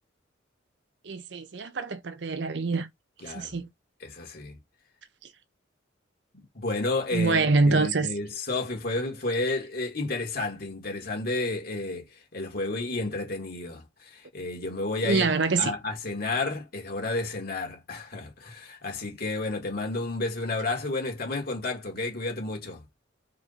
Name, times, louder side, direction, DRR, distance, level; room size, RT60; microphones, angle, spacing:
voice 1, 1.0-2.9 3.2-3.7 7.1-8.1 15.0-15.7, right 3 dB, 65° right, 0.6 m, -25 dB
voice 2, 3.2-3.6 4.0-4.6 6.3-15.3 15.6-22.8, left 2 dB, 50° left, 2.0 m, -31 dB
4.7 x 2.6 x 4.0 m
head